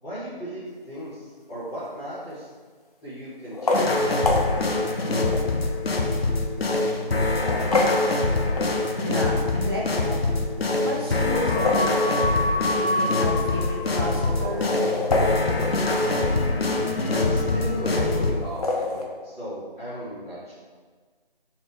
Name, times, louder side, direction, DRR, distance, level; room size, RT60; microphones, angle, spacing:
voice 1, 0.0-2.5 3.0-5.2 17.1-20.5, right 1 dB, 5° left, -18 dB, 0.8 m, -36 dB
sound 1, 1.8-2.2 3.4-5.5 6.2-6.3 7.1-9.1 11.3-12.7 13.0-13.1 13.3-13.4 14.3-16.5 18.4-19.1, left 2 dB, 40° left, 0.8 m, -28 dB
sound 2, 3.7-18.3, left 2 dB, 85° left, 0.9 m, -24 dB
voice 2, 9.0-10.2 10.8-12.0 12.6-14.8, left 1 dB, 25° right, -4 dB, 0.4 m, -32 dB
5.0 x 4.5 x 5.0 m, 1.5 s
figure-of-eight pair, 160°, 29 cm